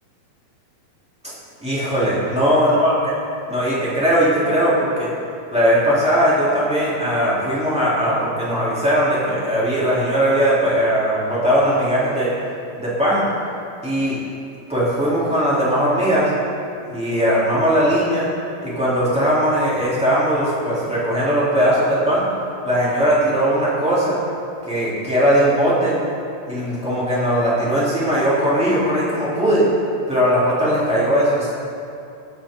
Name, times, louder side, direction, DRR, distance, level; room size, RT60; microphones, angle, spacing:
voice 1, 1.6-3.0 3.5-5.1 5.5-12.3 12.8-13.2 13.8-14.2 14.7-16.3 16.9-18.3 18.6-22.2 22.6-24.2 24.6-26.0 26.4-29.7 30.1-31.5, equal, ahead, -10 dB, 2.5 m, -19 dB
18.0 x 8.5 x 3.8 m, 2.6 s
omnidirectional pair, 4.6 m